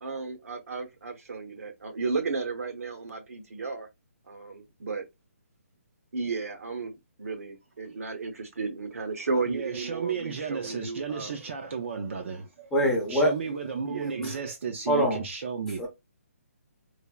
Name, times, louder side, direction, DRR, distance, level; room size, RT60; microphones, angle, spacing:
voice 1, 0.0-3.9 4.3-5.0 6.1-6.9 7.2-11.3 13.8-14.3, right 4 dB, 75° right, 0.8 m, -33 dB
voice 2, 9.5-12.7 13.1-15.9, right 6 dB, 55° right, 0.5 m, -34 dB
voice 3, 12.7-13.3 14.2-14.4 14.9-15.2 15.8-15.9, equal, 5° left, 0.6 m, -24 dB
3.2 x 2.1 x 2.2 m
hypercardioid pair, 155°, 8 cm